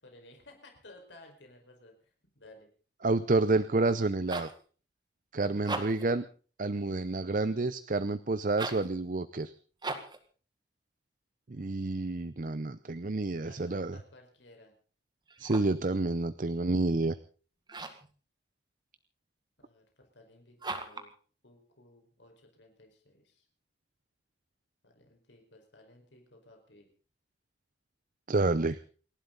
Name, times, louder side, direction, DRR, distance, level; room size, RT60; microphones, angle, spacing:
voice 1, 0.0-2.7 11.5-11.8 13.5-14.8 19.6-21.1 21.4-23.5 24.8-26.9, left 1 dB, 85° left, 3 dB, 4.9 m, -57 dB
voice 2, 3.0-4.5 5.3-6.2 6.6-9.5 11.5-14.0 15.4-17.2 28.3-28.8, right 2 dB, 45° right, 13 dB, 0.7 m, -29 dB
sound 1, 4.0-4.6 5.5-6.1 8.5-8.9 9.8-10.2 15.3-15.8 17.7-18.1 20.6-21.1, right 3 dB, 25° right, 1.8 m, -38 dB
29.0 x 12.0 x 4.0 m, 0.40 s
head